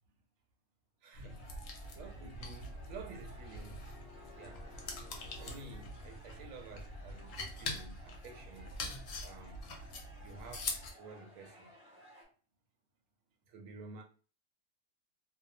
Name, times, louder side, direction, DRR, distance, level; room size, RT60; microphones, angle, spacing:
voice 1, 1.0-1.5 1.9-3.8 4.4-4.6 5.4-8.7 9.2-9.6 10.2-11.7 13.5-14.0, right 4 dB, 70° right, 0.9 m, -51 dB
sound 1, 1.1-10.9, left 2 dB, 65° left, 0.9 m, -44 dB
sound 2, 1.3-12.2, equal, 10° left, 1.1 m, -58 dB
sound 3, 1.7-6.9, left 3 dB, 80° left, 0.5 m, -59 dB
2.6 x 2.1 x 2.6 m
omnidirectional pair, 1.6 m